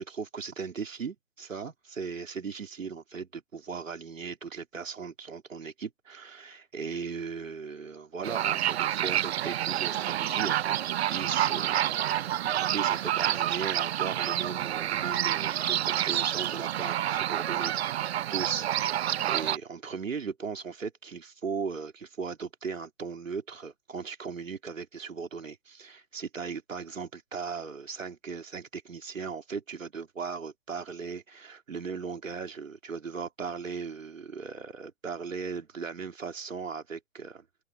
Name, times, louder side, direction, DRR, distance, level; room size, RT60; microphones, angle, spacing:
voice 1, 0.0-11.8 12.1-37.4, right 5 dB, 80° right, 3.4 m, -38 dB
sound 1, 8.2-19.6, right 12 dB, 55° right, 0.5 m, -28 dB
open air
figure-of-eight pair, 125°, 39 cm